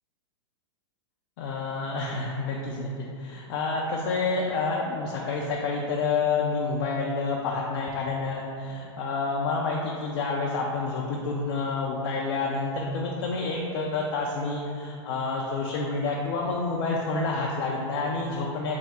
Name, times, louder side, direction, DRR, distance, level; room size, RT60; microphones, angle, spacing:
voice 1, 1.4-18.8, left 3 dB, 50° left, -2 dB, 0.4 m, -29 dB
3.4 x 2.0 x 4.1 m, 2.5 s
hypercardioid pair, 115°, 15 cm